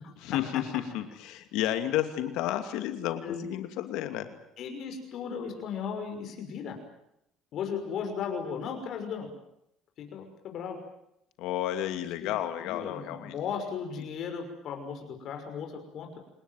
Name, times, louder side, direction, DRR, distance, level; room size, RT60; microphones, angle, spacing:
voice 1, 0.2-4.3 11.4-13.3, left 12 dB, 80° left, 8 dB, 2.6 m, -32 dB
voice 2, 4.6-6.8 7.5-9.3 10.0-10.8 12.2-16.2, left 6 dB, 60° left, 4 dB, 6.0 m, -36 dB
28.5 x 19.0 x 9.4 m, 0.78 s
cardioid pair, 115°, 0 cm